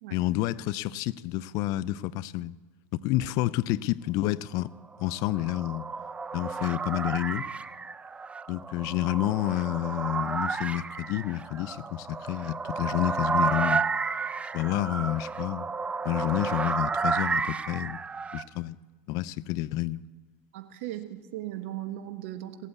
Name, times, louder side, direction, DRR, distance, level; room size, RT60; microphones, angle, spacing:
voice 1, 0.1-2.5 2.9-4.7 5.0-5.9 6.3-7.5 8.5-13.9 14.5-15.7 16.0-18.0 18.3-18.8 19.1-20.0, left 16 dB, 55° left, 0.4 m, -29 dB
sound 1, 5.0-18.5, right 4 dB, 15° right, 0.5 m, -31 dB
voice 2, 20.5-22.7, right 13 dB, 70° right, 1.2 m, -38 dB
17.0 x 8.1 x 8.3 m
hypercardioid pair, 95°, 7 cm